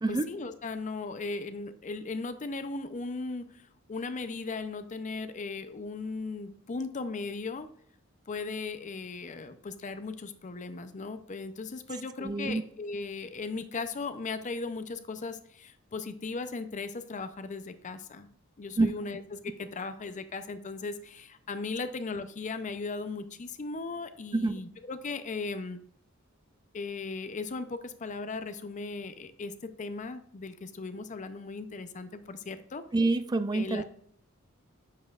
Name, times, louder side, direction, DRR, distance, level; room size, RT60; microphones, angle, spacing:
voice 1, 0.1-3.4 3.9-7.7 8.3-18.3 18.6-25.8 26.7-32.8 33.5-33.8, left 3 dB, 35° left, 11 dB, 0.5 m, -37 dB
voice 2, 12.2-12.6 18.8-18.9 24.3-24.5 32.9-33.8, right 2 dB, 20° right, 13 dB, 0.4 m, -27 dB
9.1 x 5.4 x 2.4 m, 0.65 s
head